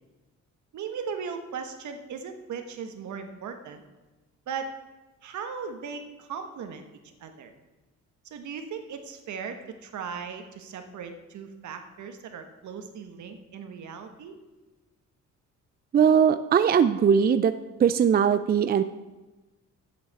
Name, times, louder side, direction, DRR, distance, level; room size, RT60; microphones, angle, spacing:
voice 1, 0.7-3.8 4.5-4.7 5.2-7.5 8.3-14.3, right 6 dB, 70° right, 6 dB, 1.4 m, -38 dB
voice 2, 15.9-17.5 17.8-18.8, right 7 dB, 30° right, 11 dB, 0.4 m, -20 dB
7.7 x 7.0 x 7.6 m, 1.1 s
cardioid pair, 90°, 30 cm